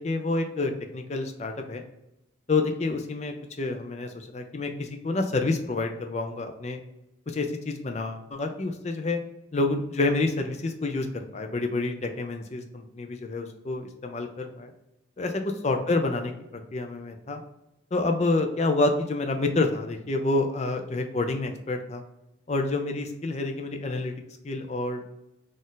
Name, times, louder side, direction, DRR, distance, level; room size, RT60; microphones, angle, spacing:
voice 1, 0.0-1.8 2.5-6.8 7.3-9.2 9.5-14.7 15.2-16.3 16.7-17.4 17.9-22.0 22.5-24.1 24.4-25.0, left 2 dB, 35° left, 5 dB, 0.5 m, -28 dB
4.1 x 2.5 x 3.8 m, 0.91 s
head